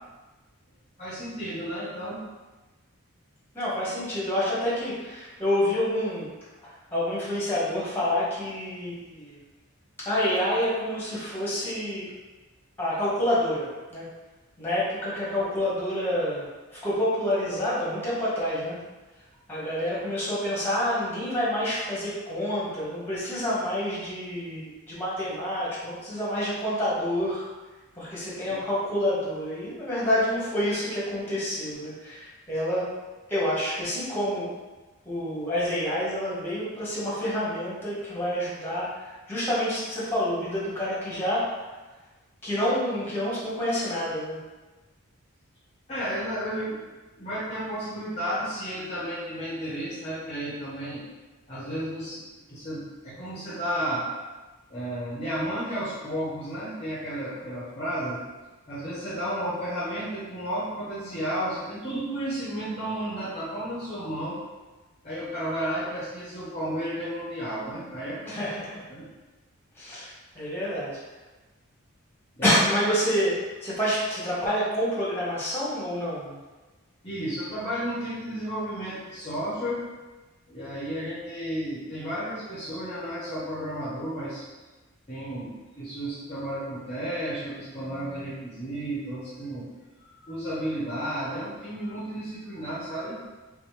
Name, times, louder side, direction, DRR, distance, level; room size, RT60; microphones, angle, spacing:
voice 1, 1.0-2.2 28.5-28.6 45.9-46.8 47.2-51.0 51.5-52.2 52.5-54.1 54.7-58.2 58.7-64.4 65.0-68.5 68.9-69.1 72.4-72.5 77.0-79.8 80.5-84.4 85.1-89.7 90.0-93.2, equal, 25° left, -9 dB, 0.9 m, -32 dB
voice 2, 3.5-6.3 6.9-9.4 10.0-12.1 12.8-14.0 14.6-16.4 16.7-18.8 19.5-27.5 27.9-32.9 33.3-34.5 35.0-41.4 42.4-44.4 68.3-68.9 69.8-71.0 72.4-76.4, equal, 10° left, -8 dB, 1.3 m, -28 dB
3.5 x 3.2 x 3.2 m, 1.2 s
head